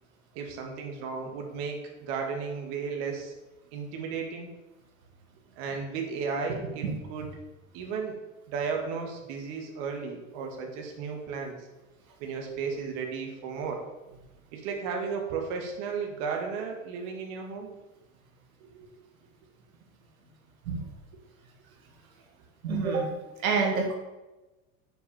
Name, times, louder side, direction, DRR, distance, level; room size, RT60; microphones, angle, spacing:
voice 1, 0.4-3.3 3.7-4.5 5.6-7.3 7.7-8.1 8.5-11.7 12.2-13.8 14.5-17.8 18.6-18.9, right 5 dB, 60° right, 2 dB, 1.8 m, -34 dB
voice 2, 22.6-23.1 23.4-24.0, right 4 dB, 85° right, 1 dB, 1.8 m, -27 dB
6.8 x 4.9 x 6.9 m, 1.1 s
supercardioid pair, 125°, 40 cm